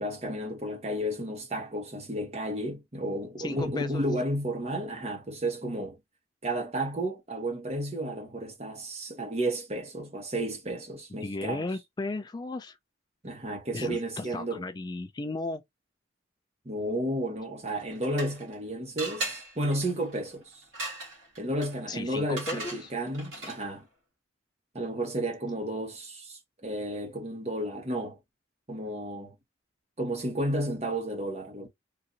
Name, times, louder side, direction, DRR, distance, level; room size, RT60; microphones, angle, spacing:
voice 1, 0.0-6.0 6.4-11.7 13.2-14.6 16.6-20.6 21.4-23.9 24.7-28.2 28.7-29.3 30.0-31.7, right 1 dB, 35° right, 1.2 m, -32 dB
voice 2, 3.4-4.0 11.2-12.8 13.7-15.6 21.9-22.9, left 2 dB, 20° left, 0.3 m, -35 dB
sound 1, 17.7-18.6 19.0-23.8, right 2 dB, 75° right, 2.1 m, -39 dB
3.8 x 2.6 x 2.8 m
head